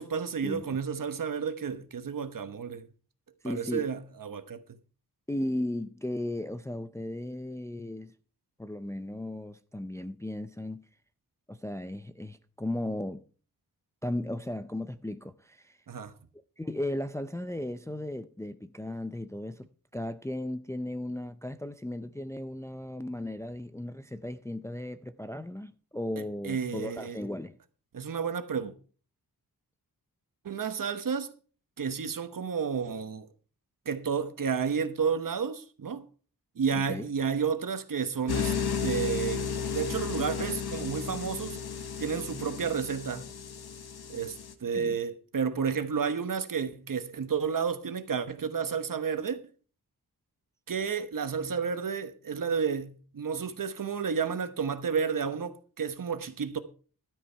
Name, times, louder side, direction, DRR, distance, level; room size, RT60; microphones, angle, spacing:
voice 1, 0.0-2.9 3.4-4.6 15.9-16.1 26.2-27.2 27.9-28.7 30.4-31.3 31.8-33.3 33.8-36.0 36.6-41.6 42.0-43.3 44.1-49.4 50.7-56.6, right 6 dB, 60° right, 1.2 m, -31 dB
voice 2, 3.4-3.9 5.3-8.1 8.6-10.8 11.5-13.2 14.0-15.8 16.6-27.6 36.9-37.1 44.7-45.0, left 1 dB, 10° left, 0.4 m, -36 dB
sound 1, 38.3-44.5, left 6 dB, 75° left, 1.2 m, -34 dB
12.5 x 8.4 x 4.5 m
wide cardioid pair, 125°, 38 cm